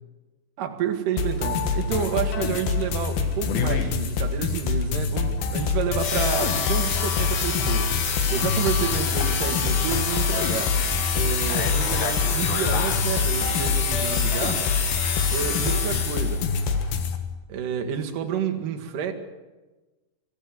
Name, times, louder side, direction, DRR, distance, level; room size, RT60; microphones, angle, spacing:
voice 1, 0.6-8.0 8.3-10.8 11.1-14.7 15.3-16.5 17.5-19.1, right 8 dB, 60° right, 2.9 m, -29 dB
sound 1, 1.2-17.2, left 5 dB, 70° left, 3.2 m, -26 dB
sound 2, 6.0-16.5, left 6 dB, 50° left, 2.2 m, -28 dB
24.5 x 15.5 x 7.6 m
omnidirectional pair, 4.7 m